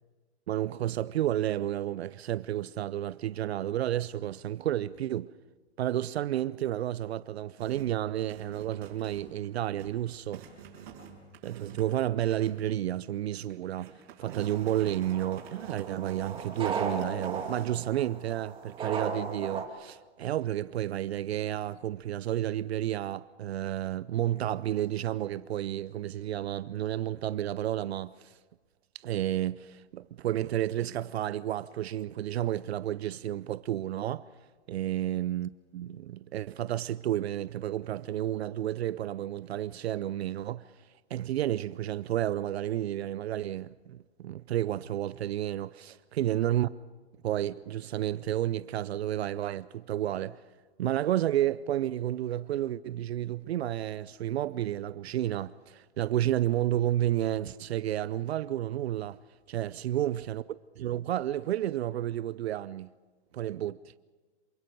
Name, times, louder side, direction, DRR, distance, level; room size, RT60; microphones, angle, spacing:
voice 1, 0.5-5.3 5.8-10.4 11.4-13.9 14.2-28.3 29.0-34.2 34.7-40.6 41.1-46.7 47.2-50.4 50.8-59.2 59.5-62.9 63.3-63.8, right 12 dB, 65° right, 0.6 m, -31 dB
sound 1, 7.6-8.0 8.3-9.5 9.8-10.0 10.3-12.6 13.0-13.1 13.5-17.7, right 8 dB, 50° right, 6.0 m, -48 dB
sound 2, 14.2-19.6, right 5 dB, 15° right, 2.2 m, -37 dB
27.0 x 17.0 x 6.8 m
hypercardioid pair, 140°, 33 cm